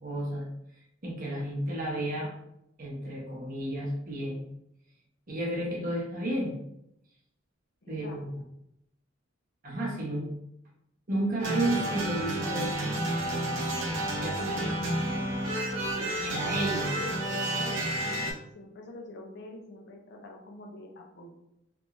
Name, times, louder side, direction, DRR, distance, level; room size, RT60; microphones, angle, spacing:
voice 1, 0.0-0.5 1.0-2.3 2.8-4.4 5.3-6.6 7.9-8.3 9.6-10.3 11.1-12.8 14.1-14.8 16.1-16.9, right 1 dB, 45° right, -2 dB, 1.0 m, -32 dB
voice 2, 7.8-8.2 15.9-17.9 18.5-21.3, left 2 dB, 60° left, 2 dB, 0.6 m, -45 dB
sound 1, 11.4-18.3, right 1 dB, 75° right, 0.9 m, -30 dB
3.6 x 2.9 x 2.5 m, 0.81 s
head